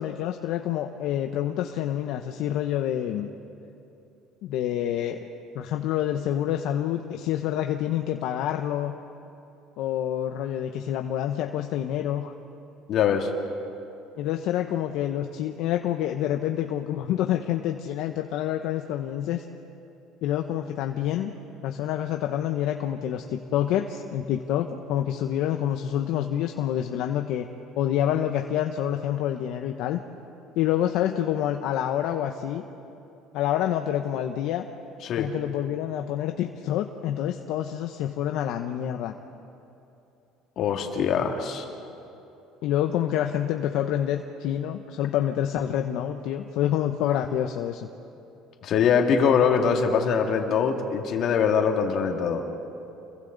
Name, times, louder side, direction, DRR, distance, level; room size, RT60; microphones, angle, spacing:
voice 1, 0.0-3.3 4.4-5.2 5.5-8.9 9.8-12.3 14.2-19.4 20.2-21.3 21.6-27.5 27.8-30.0 30.6-32.6 33.3-34.6 35.2-39.1 42.6-47.9, left 11 dB, 70° left, 5 dB, 0.9 m, -27 dB
voice 2, 12.9-13.3 35.0-35.3 40.6-41.7 48.6-52.4, left 6 dB, 55° left, 2 dB, 2.4 m, -23 dB
29.5 x 22.5 x 4.0 m, 2.9 s
cardioid pair, 130°, 0 cm